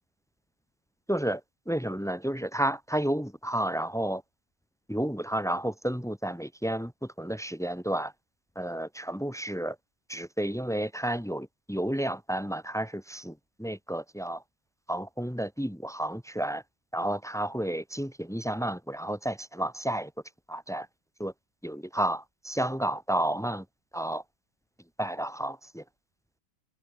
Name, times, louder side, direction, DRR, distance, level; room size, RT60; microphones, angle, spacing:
voice 1, 1.1-4.2 4.9-8.1 8.5-9.8 10.1-14.4 14.9-16.6 16.9-20.1 20.5-20.9 21.2-21.3 21.6-23.6 23.9-24.2 25.0-25.8, right 1 dB, ahead, 0.8 m, -31 dB
omnidirectional pair, 3.8 m